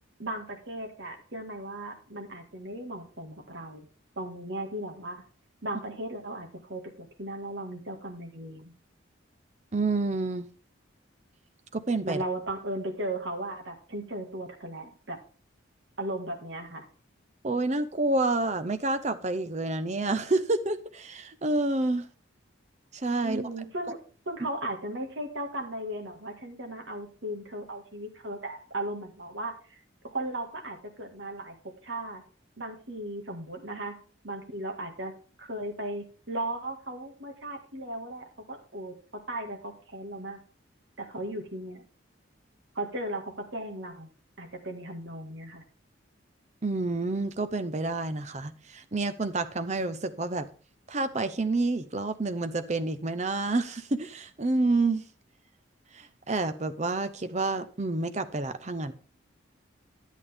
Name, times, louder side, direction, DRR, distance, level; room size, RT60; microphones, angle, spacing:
voice 1, 0.2-3.9 4.2-5.2 5.6-8.7 12.0-15.2 16.0-16.9 23.2-24.0 24.3-29.8 30.0-31.6 31.8-32.2 32.6-34.0 34.2-35.1 35.4-40.4 41.0-41.8 42.8-44.1 44.4-45.6, right 1 dB, 65° right, 1.9 m, -36 dB
voice 2, 9.7-10.5 11.7-12.2 17.4-22.1 22.9-23.4 46.6-50.5 50.9-55.0 55.9-58.9, right 2 dB, 35° right, 0.6 m, -28 dB
11.0 x 8.3 x 3.5 m
head